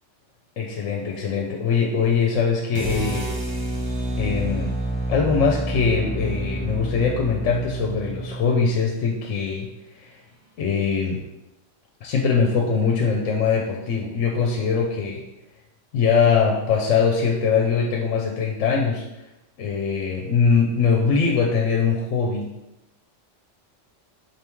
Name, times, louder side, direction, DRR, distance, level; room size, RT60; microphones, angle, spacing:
voice 1, 0.6-3.3 4.2-4.7 5.1-10.2 10.6-11.3 12.0-15.2 15.9-19.0 19.6-22.5, left 5 dB, 75° left, 0 dB, 0.9 m, -22 dB
sound 1, 2.7-8.9, right 2 dB, 30° right, 0.5 m, -28 dB
4.5 x 3.4 x 3.0 m, 0.94 s
omnidirectional pair, 1.3 m